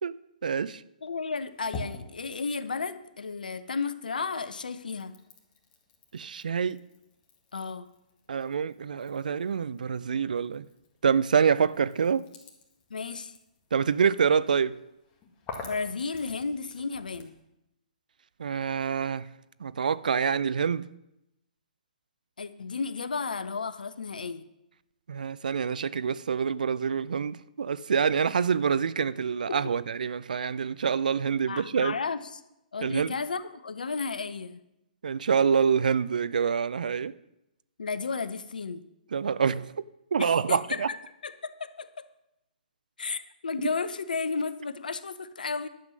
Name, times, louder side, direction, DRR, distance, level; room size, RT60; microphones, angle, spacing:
voice 1, 0.4-0.8 6.1-6.8 8.3-10.6 11.0-12.3 13.7-14.7 18.4-19.3 19.6-20.9 25.1-31.9 32.8-33.1 35.0-37.1 39.1-39.9 40.1-40.9 43.6-43.7, right 6 dB, 65° right, 0.5 m, -26 dB
voice 2, 1.0-5.1 7.5-7.9 12.9-13.3 15.6-17.3 22.4-24.4 29.0-29.1 29.5-29.6 31.5-32.4 32.7-34.6 37.8-38.8 40.2-41.0 41.2-42.1 43.0-45.7, left 4 dB, 70° left, 0.8 m, -33 dB
sound 1, 1.1-3.8 4.1-17.4, left 3 dB, 25° left, 1.8 m, -48 dB
11.0 x 7.2 x 6.3 m
figure-of-eight pair, 125°, 5 cm